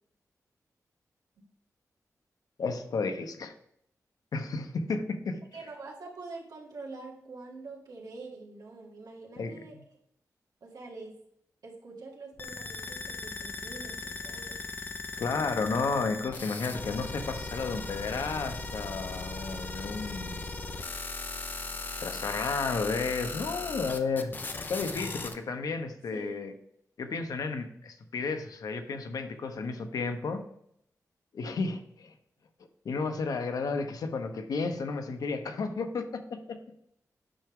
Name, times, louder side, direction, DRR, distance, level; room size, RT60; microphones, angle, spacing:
voice 1, 2.6-3.5 4.3-5.4 9.4-9.5 15.2-20.4 22.0-26.5 27.0-30.4 31.3-32.1 32.8-36.6, left 4 dB, 75° left, 7 dB, 0.8 m, -32 dB
voice 2, 5.5-9.8 10.6-11.2 11.6-14.6 26.1-26.5, right 3 dB, 80° right, -2 dB, 1.9 m, -45 dB
sound 1, 12.4-25.3, left 3 dB, 30° left, 0.6 m, -38 dB
8.8 x 5.9 x 3.6 m, 0.73 s
wide cardioid pair, 180°, 6 cm